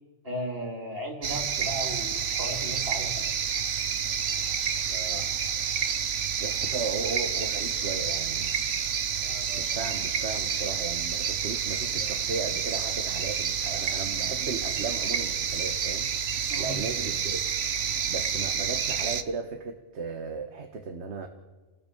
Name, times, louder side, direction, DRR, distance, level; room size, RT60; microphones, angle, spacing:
voice 1, 0.2-3.3 16.5-16.9, right 1 dB, 55° right, 2 dB, 3.5 m, -35 dB
sound 1, 1.2-19.2, right 7 dB, 90° right, 1.4 m, -29 dB
voice 2, 4.9-5.3 6.4-8.6 9.5-17.4 18.1-21.3, right 4 dB, 70° right, 6 dB, 1.7 m, -36 dB
30.0 x 18.0 x 7.0 m, 1.3 s
omnidirectional pair, 1.2 m